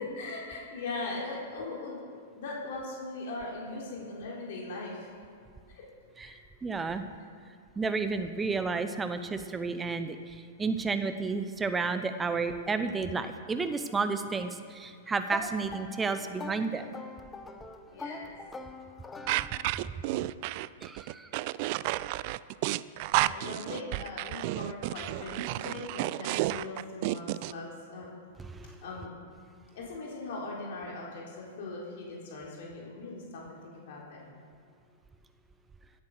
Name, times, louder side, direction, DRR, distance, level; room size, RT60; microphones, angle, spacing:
voice 1, 0.1-2.0 2.3-5.1 5.7-5.8 6.2-6.4 17.9-18.4 19.5-19.6 23.1-28.1 28.8-29.1 29.7-34.3, left 2 dB, 60° left, -3 dB, 3.7 m, -40 dB
voice 2, 6.6-7.0 7.8-16.9 20.8-21.3 28.4-28.7, right 4 dB, 15° right, 9 dB, 0.8 m, -31 dB
sound 1, 15.3-19.9, left 2 dB, 15° left, 1.1 m, -43 dB
sound 2, 19.3-27.5, right 18 dB, 50° right, 0.4 m, -31 dB
16.5 x 8.4 x 6.6 m, 2.3 s
hypercardioid pair, 115°, 0 cm